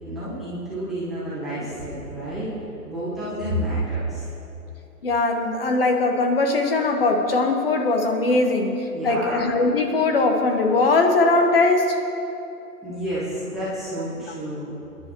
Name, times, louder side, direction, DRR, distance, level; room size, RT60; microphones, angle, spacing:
voice 1, 0.0-2.5 2.8-4.3 8.9-9.4 12.8-14.7, right 1 dB, ahead, -14 dB, 0.8 m, -29 dB
voice 2, 5.0-12.0, left 3 dB, 35° left, 4 dB, 1.1 m, -20 dB
22.0 x 10.5 x 3.0 m, 2.9 s
hypercardioid pair, 160°, 47 cm